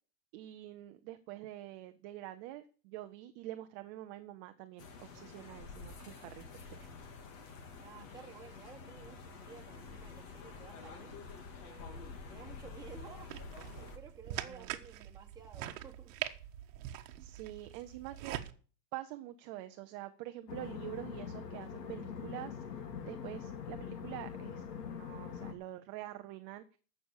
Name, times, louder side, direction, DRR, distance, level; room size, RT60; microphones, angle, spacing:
voice 1, 0.3-6.4 6.8-6.9 14.3-14.7 17.2-18.4 18.9-26.6, right 15 dB, 25° right, 8 dB, 0.5 m, -46 dB
sound 1, 4.8-14.0, left 4 dB, 50° left, 2.9 m, -49 dB
voice 2, 7.8-11.2 11.6-16.3, right 6 dB, 10° right, -3 dB, 2.8 m, -54 dB
sound 2, 13.3-18.5, right 12 dB, 50° right, 1.3 m, -43 dB
sound 3, 20.5-25.5, left 7 dB, 75° left, 2.6 m, -43 dB
14.5 x 6.3 x 7.1 m, 0.40 s
supercardioid pair, 155°, 49 cm